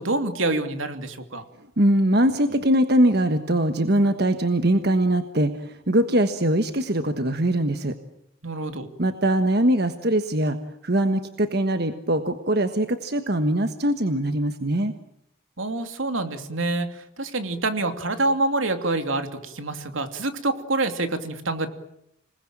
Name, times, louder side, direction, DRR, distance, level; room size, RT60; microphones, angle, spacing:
voice 1, 0.0-1.4 8.4-8.9 15.6-16.9 17.2-21.7, right 2 dB, 85° right, 7 dB, 2.8 m, -26 dB
voice 2, 1.8-7.9 9.0-10.6 10.8-14.9, right 1 dB, 55° right, 8 dB, 1.4 m, -22 dB
27.5 x 20.0 x 9.0 m, 0.75 s
head